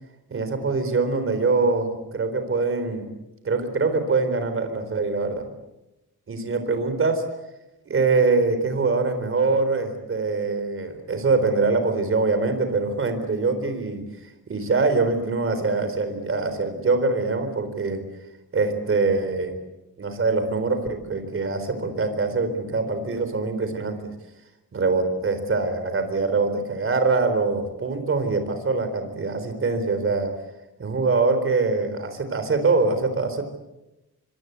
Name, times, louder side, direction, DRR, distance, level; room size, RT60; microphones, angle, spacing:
voice 1, 0.3-3.1 3.4-5.4 6.3-7.2 7.9-14.0 14.5-18.0 18.5-19.6 20.0-24.0 24.7-30.3 30.8-33.4, right 3 dB, 35° right, 8 dB, 4.1 m, -23 dB
25.5 x 24.5 x 8.3 m, 0.97 s
wide cardioid pair, 155°, 37 cm